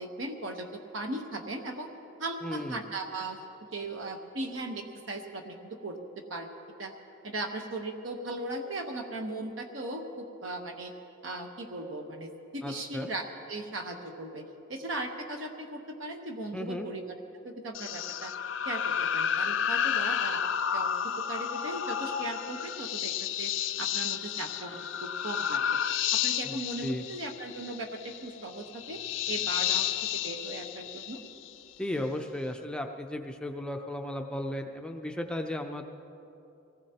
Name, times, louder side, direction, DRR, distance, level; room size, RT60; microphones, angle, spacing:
voice 1, 0.0-1.9 2.2-3.4 3.7-5.6 5.8-6.0 6.3-6.5 6.8-6.9 7.2-10.9 11.2-14.4 14.7-17.1 17.4-18.3 18.6-20.9 21.3-23.5 23.8-25.6 26.1-29.0 29.3-29.9 30.1-31.2, right 2 dB, 70° right, 3 dB, 1.1 m, -38 dB
voice 2, 2.4-2.7 12.6-13.1 16.5-16.9 26.4-27.0 31.8-35.9, left 1 dB, 5° left, 3 dB, 0.5 m, -35 dB
sound 1, 17.7-31.6, left 9 dB, 65° left, 0.4 m, -31 dB
24.0 x 18.5 x 2.9 m, 2.9 s
head